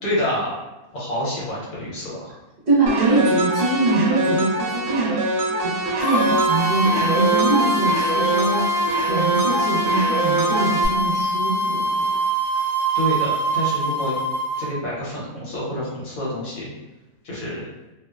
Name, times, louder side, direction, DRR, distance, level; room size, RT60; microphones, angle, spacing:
voice 1, 0.0-0.5 0.9-2.4 12.9-14.2 14.6-16.7 17.2-17.6, equal, 70° left, -6 dB, 1.3 m, -27 dB
voice 2, 2.7-5.2 5.6-5.7 6.0-8.7 9.1-11.9, right 3 dB, 45° right, -10 dB, 0.9 m, -23 dB
sound 1, 2.9-10.9, right 2 dB, 70° right, 0.9 m, -24 dB
sound 2, 6.0-14.6, right 1 dB, 15° left, 0.6 m, -23 dB
2.7 x 2.1 x 2.3 m, 1.1 s
omnidirectional pair, 1.5 m